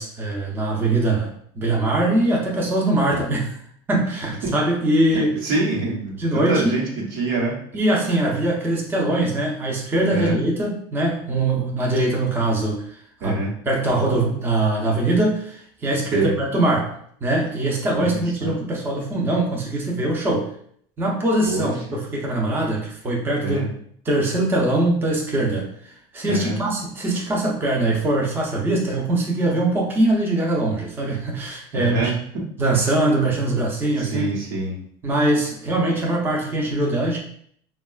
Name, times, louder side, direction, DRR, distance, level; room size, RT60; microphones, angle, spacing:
voice 1, 0.0-3.5 3.9-5.4 6.2-6.8 7.7-12.8 13.2-17.0 17.2-20.5 21.0-23.7 24.0-25.7 26.1-32.1 32.6-34.3 35.0-37.2, right 2 dB, 15° right, -2 dB, 0.6 m, -22 dB
voice 2, 5.1-7.6 10.1-10.4 13.2-13.5 16.1-16.4 17.9-18.5 21.4-21.7 23.4-23.7 26.3-26.6 31.7-32.1 34.0-34.8, right 3 dB, 80° right, -3 dB, 1.0 m, -25 dB
3.5 x 2.2 x 2.3 m, 0.63 s
cardioid pair, 135°, 13 cm